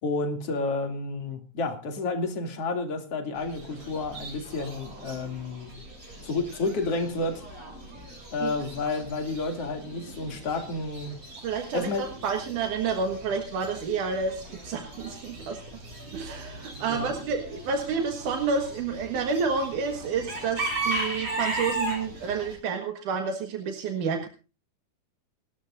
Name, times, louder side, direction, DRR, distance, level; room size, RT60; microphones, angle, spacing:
voice 1, 0.0-5.7 6.2-7.4 8.3-11.1 11.7-12.0 16.9-17.1, left 3 dB, 50° left, 4 dB, 3.6 m, -30 dB
Chicken rooster / Bird, 3.4-22.5, right 2 dB, 55° right, 9.3 m, -38 dB
voice 2, 11.4-15.6 16.1-24.3, right 5 dB, 85° right, 4 dB, 3.2 m, -29 dB
30.0 x 13.0 x 2.6 m, 0.34 s
omnidirectional pair, 3.5 m